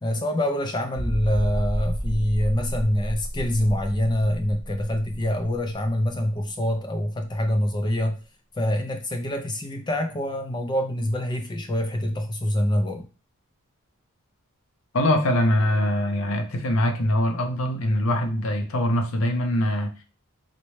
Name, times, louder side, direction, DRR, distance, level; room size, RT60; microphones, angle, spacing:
voice 1, 0.0-8.2 8.6-13.0, left 1 dB, 20° left, 5 dB, 0.4 m, -25 dB
sound 1, 1.0-6.4 6.7-6.8 7.3-7.4, equal, ahead, 0.9 m, -31 dB
voice 2, 14.9-20.0, left 1 dB, 65° left, 5 dB, 0.6 m, -23 dB
4.0 x 2.2 x 3.1 m, 0.34 s
head